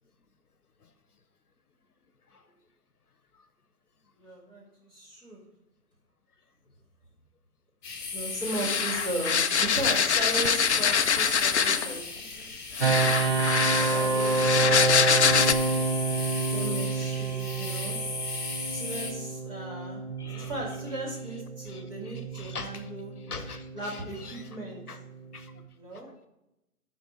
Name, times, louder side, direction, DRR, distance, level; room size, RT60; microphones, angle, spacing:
voice 1, 4.2-5.4 8.1-12.7 13.8-14.9 16.5-18.0 18.7-20.0 20.3-23.1 23.7-24.8 25.8-26.1, right 1 dB, 10° right, -7 dB, 2.4 m, -37 dB
sound 1, 7.8-19.1, left 4 dB, 35° left, 1.9 m, -36 dB
sound 2, 8.5-12.0 12.8-15.5, left 7 dB, 50° left, 0.5 m, -24 dB
sound 3, 12.8-25.6, right 4 dB, 40° right, 0.8 m, -29 dB
voice 2, 20.2-20.5 21.7-22.9 23.3-24.4 24.9-25.0 25.3-25.5 26.1-26.3, left 4 dB, 80° left, 10 dB, 1.0 m, -43 dB
12.5 x 4.5 x 4.3 m, 0.90 s
figure-of-eight pair, 140°, 45 cm